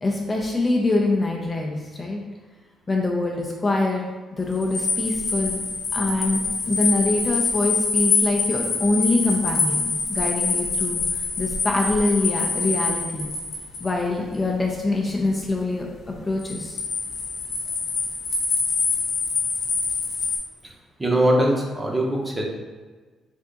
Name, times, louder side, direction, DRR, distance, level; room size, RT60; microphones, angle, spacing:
voice 1, 0.0-2.2 2.9-4.0 4.3-5.6 5.9-11.0 11.4-13.3 13.8-16.8, left 2 dB, 25° left, 0 dB, 0.5 m, -24 dB
sound 1, 4.6-13.9 16.4-20.4, left 4 dB, 70° left, 0.8 m, -25 dB
voice 2, 21.0-22.4, right 1 dB, 20° right, -1 dB, 0.8 m, -21 dB
3.4 x 2.6 x 3.8 m, 1.4 s
cardioid pair, 90°, 0 cm